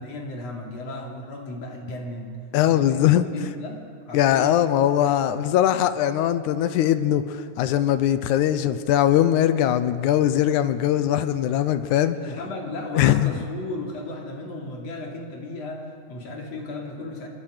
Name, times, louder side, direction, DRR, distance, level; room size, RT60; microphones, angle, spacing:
voice 1, 0.0-2.4 2.7-3.8 4.1-4.6 4.8-5.2 12.2-17.3, left 2 dB, 60° left, 0 dB, 3.8 m, -35 dB
voice 2, 2.5-3.3 4.1-12.2 13.0-13.3, left 11 dB, 90° left, 11 dB, 2.2 m, -21 dB
26.0 x 22.5 x 5.0 m, 2.3 s
omnidirectional pair, 3.4 m